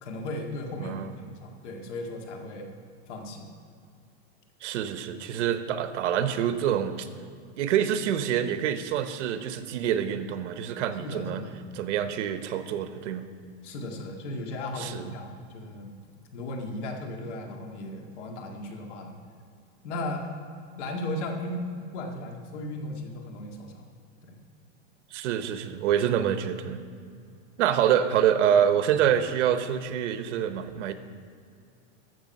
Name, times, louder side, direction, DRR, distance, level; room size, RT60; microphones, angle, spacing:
voice 1, 0.0-2.7 3.1-3.5 11.0-11.5 13.6-16.0 16.3-19.1 19.8-20.3 20.8-23.9, left 1 dB, 80° left, 2 dB, 2.0 m, -36 dB
voice 2, 0.8-1.1 4.6-7.1 7.6-11.4 11.7-13.2 14.8-15.0 25.1-26.8 27.6-30.9, right 9 dB, 90° right, 10 dB, 1.0 m, -26 dB
14.0 x 6.5 x 5.4 m, 2.3 s
supercardioid pair, 170°, 35 cm